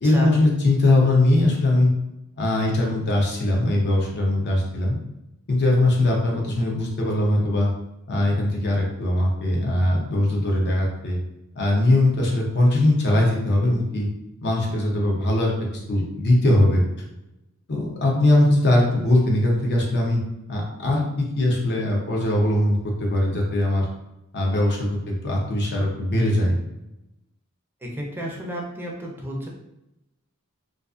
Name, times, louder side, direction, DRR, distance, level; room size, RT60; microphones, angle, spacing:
voice 1, 0.0-1.9 2.4-5.0 5.5-7.7 8.1-11.2 11.6-14.1 14.4-16.8 17.7-20.2 20.5-23.9 24.3-25.0 25.2-26.6, left 1 dB, 50° left, -1 dB, 0.6 m, -21 dB
voice 2, 27.8-29.5, equal, 10° right, -2 dB, 0.5 m, -30 dB
2.4 x 2.4 x 2.4 m, 0.89 s
head